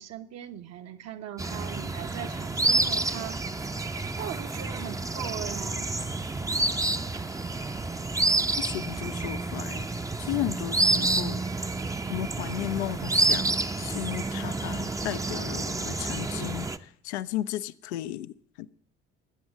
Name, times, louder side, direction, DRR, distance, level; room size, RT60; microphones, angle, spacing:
voice 1, 0.0-3.4 4.2-5.9, right 10 dB, 45° right, 1.1 m, -39 dB
sound 1, 1.4-16.8, right 2 dB, 10° right, 0.7 m, -29 dB
voice 2, 8.6-9.8 10.2-11.4 12.1-13.5 13.8-18.7, left 14 dB, 65° left, 0.6 m, -34 dB
19.5 x 7.9 x 7.5 m
figure-of-eight pair, 50°, 35 cm